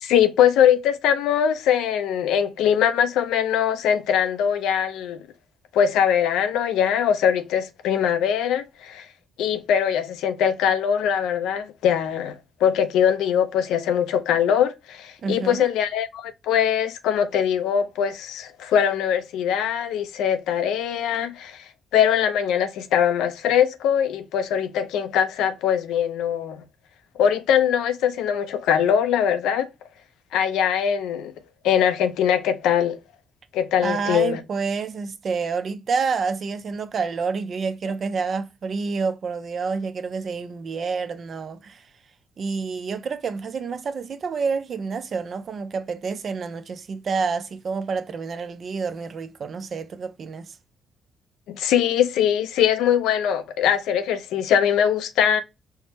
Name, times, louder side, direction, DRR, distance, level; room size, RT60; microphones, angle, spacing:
voice 1, 0.0-5.2 5.7-9.0 9.4-21.6 21.9-26.6 27.2-29.7 30.3-31.3 31.6-33.0 33.5-34.4 51.5-55.4, left 9 dB, 90° left, 0.5 m, -22 dB
voice 2, 15.2-15.7 33.8-41.8 42.4-50.6, right 5 dB, 50° right, 0.5 m, -28 dB
4.5 x 2.1 x 2.7 m
cardioid pair, 90°, 0 cm